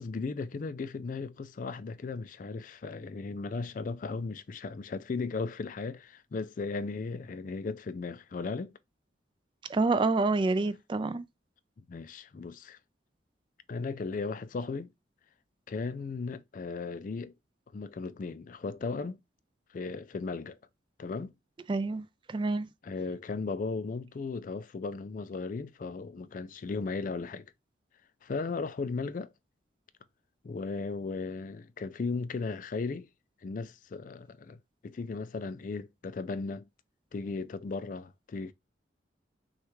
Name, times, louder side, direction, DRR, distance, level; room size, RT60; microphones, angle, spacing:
voice 1, 0.0-8.7 11.8-12.8 13.7-14.9 15.7-17.3 17.7-19.2 19.7-20.6 21.0-21.3 22.8-27.5 28.2-29.3 30.4-33.1 33.4-36.7 37.1-38.5, left 4 dB, 45° left, 0.4 m, -36 dB
voice 2, 9.7-11.2 21.7-22.7, right 3 dB, 25° right, 0.3 m, -28 dB
6.3 x 2.4 x 3.0 m
head